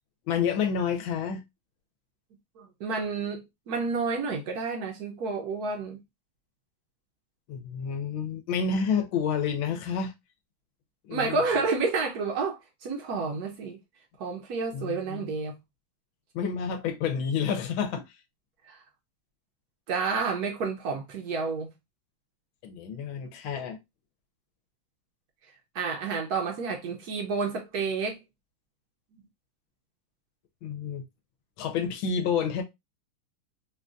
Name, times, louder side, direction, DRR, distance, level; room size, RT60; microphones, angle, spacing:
voice 1, 0.3-1.4 7.5-10.1 11.0-11.4 14.7-15.3 16.3-18.0 22.6-23.8 30.6-31.0 31.6-32.6, left 6 dB, 80° left, 1.4 m, -29 dB
voice 2, 2.6-6.0 11.1-13.8 14.2-15.6 18.6-18.8 19.9-21.7 25.7-28.2, right 4 dB, 65° right, 1.0 m, -30 dB
3.8 x 2.3 x 2.4 m
omnidirectional pair, 2.2 m